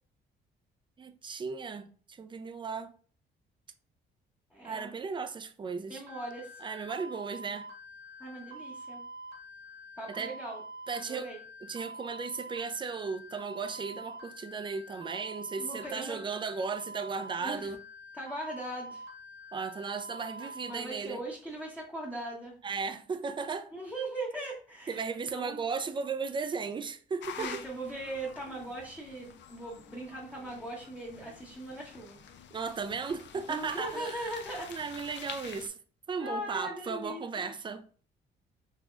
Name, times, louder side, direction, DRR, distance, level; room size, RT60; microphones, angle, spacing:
voice 1, 1.0-2.9 4.6-6.0 6.6-7.7 10.1-10.3 10.9-11.3 11.6-17.8 19.5-21.2 22.6-23.7 24.9-27.7 32.5-34.3 34.7-35.7 36.1-37.8, right 5 dB, 25° right, 0.4 m, -36 dB
voice 2, 4.5-4.9 5.9-6.6 8.2-9.0 10.0-10.6 11.0-11.4 15.6-16.2 17.4-17.7 18.1-19.0 20.4-22.5 23.7-25.0 25.3-25.6 27.4-32.2 33.5-34.7 36.2-37.5, right 1 dB, 10° left, 0.9 m, -40 dB
sound 1, 6.1-20.7, right 1 dB, 70° right, 1.5 m, -46 dB
sound 2, 27.2-35.7, left 7 dB, 65° left, 0.5 m, -47 dB
4.0 x 2.9 x 2.4 m
cardioid pair, 90°, 20 cm